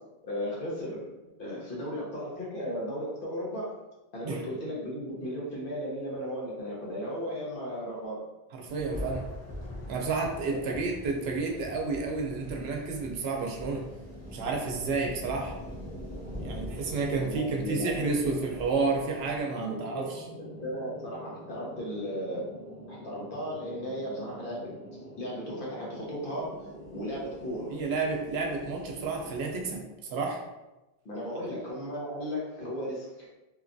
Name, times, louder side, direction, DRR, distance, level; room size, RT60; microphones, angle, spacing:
voice 1, 0.3-1.1 1.4-3.7 4.1-8.2 10.5-10.7 17.2-17.9 19.6-22.5 22.9-24.7 25.2-26.5 26.9-27.7 31.0-33.3, equal, 60° left, -5 dB, 1.0 m, -35 dB
voice 2, 8.5-9.3 9.9-13.9 14.3-15.5 16.4-20.2 27.7-29.8 30.1-30.4, right 4 dB, 80° right, 0 dB, 0.8 m, -31 dB
Thunder, 8.7-19.4, left 1 dB, 20° left, 0.5 m, -43 dB
sound 1, 12.4-29.8, equal, 5° right, 0.9 m, -45 dB
2.8 x 2.3 x 2.5 m, 1.0 s
omnidirectional pair, 1.0 m